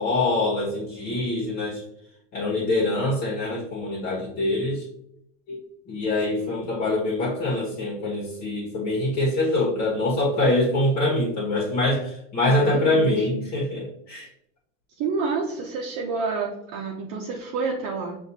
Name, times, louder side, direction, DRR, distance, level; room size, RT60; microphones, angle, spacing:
voice 1, 0.0-1.8 2.3-4.8 5.5-5.6 5.9-14.3, left 2 dB, 45° left, -6 dB, 1.4 m, -24 dB
voice 2, 6.3-6.6 12.4-13.4 15.0-18.2, right 4 dB, 50° right, -1 dB, 0.8 m, -29 dB
5.6 x 2.6 x 2.7 m, 0.77 s
hypercardioid pair, 95°, 37 cm